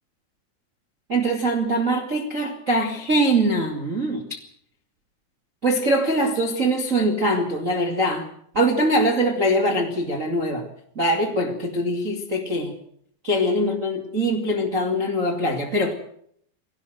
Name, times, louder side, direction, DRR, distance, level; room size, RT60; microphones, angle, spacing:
voice 1, 1.1-4.4 5.6-8.3 8.5-10.7 10.9-12.7 13.2-15.9, right 1 dB, 45° right, 1 dB, 1.0 m, -22 dB
21.0 x 18.0 x 7.9 m, 0.66 s
omnidirectional pair, 5.6 m